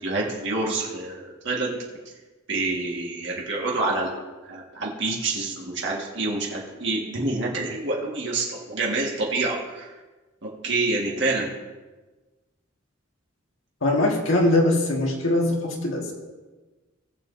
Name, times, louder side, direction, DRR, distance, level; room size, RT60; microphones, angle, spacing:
voice 1, 0.0-1.8 2.5-9.9 10.4-11.5, right 2 dB, 60° right, -3 dB, 1.8 m, -27 dB
voice 2, 13.8-16.1, left 1 dB, 75° left, -2 dB, 1.8 m, -22 dB
19.5 x 7.6 x 2.7 m, 1.2 s
head